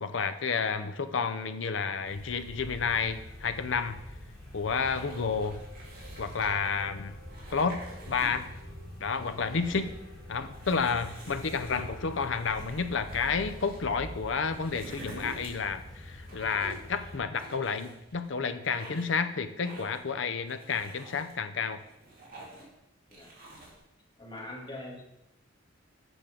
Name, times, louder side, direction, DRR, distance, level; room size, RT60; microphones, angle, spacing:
voice 1, 0.0-4.0 4.5-5.6 6.2-7.2 7.5-8.5 9.0-10.0 10.3-21.8, left 5 dB, 70° left, 10 dB, 0.6 m, -31 dB
sound 1, 2.0-17.2, left 1 dB, ahead, 3.0 m, -45 dB
sound 2, 4.6-16.9 17.2-17.4, right 1 dB, 70° right, 2.5 m, -59 dB
sound 3, 4.7-6.8 7.2-8.6 8.9-9.9 10.5-13.8 14.2-15.8 16.2-16.9 17.3-18.3 18.6-19.2 19.6-20.1 20.5-21.3 21.8-22.7 23.1-23.8, right 2 dB, 45° right, 2.6 m, -48 dB
voice 2, 24.2-25.0, left 1 dB, 25° left, -3 dB, 2.0 m, -43 dB
7.8 x 6.1 x 5.1 m, 0.89 s
head